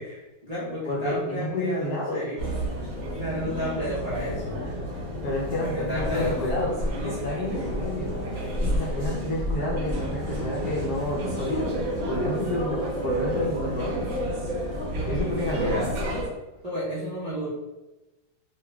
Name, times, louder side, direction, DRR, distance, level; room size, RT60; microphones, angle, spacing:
voice 1, 0.0-2.4 3.2-4.6 5.6-6.8 15.5-16.0 16.6-17.5, equal, 75° right, -10 dB, 0.3 m, -32 dB
voice 2, 0.8-2.2 5.2-6.7 7.0-8.2 8.7-11.7 12.1-14.2 15.0-15.9, left 1 dB, 65° left, -3 dB, 1.0 m, -29 dB
sound 1, 2.4-16.3, equal, 55° right, 0.9 m, -30 dB
3.7 x 3.2 x 2.2 m, 1.0 s
omnidirectional pair, 2.2 m